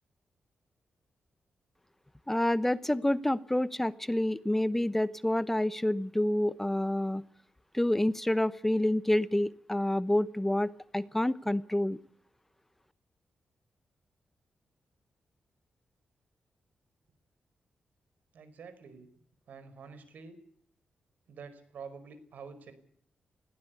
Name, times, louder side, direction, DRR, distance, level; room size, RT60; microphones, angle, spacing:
voice 1, 2.3-7.2 7.7-12.0, left 1 dB, 10° left, 16 dB, 0.9 m, -28 dB
voice 2, 18.3-19.1 19.5-20.4 21.3-22.7, right 5 dB, 75° right, 12 dB, 5.1 m, -47 dB
21.0 x 16.5 x 8.3 m, 0.62 s
cardioid pair, 80°, 3 cm